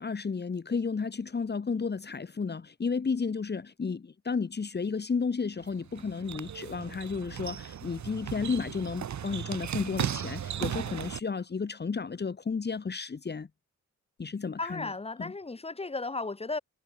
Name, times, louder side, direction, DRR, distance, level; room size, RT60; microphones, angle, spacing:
voice 1, 0.0-13.5 14.2-14.9 15.2-15.3, left 5 dB, 35° left, 3.1 m, -32 dB
sound 1, 5.6-11.2, right 9 dB, 70° right, 1.6 m, -36 dB
voice 2, 14.6-16.6, left 3 dB, 20° left, 3.6 m, -35 dB
wide cardioid pair, 170°, 29 cm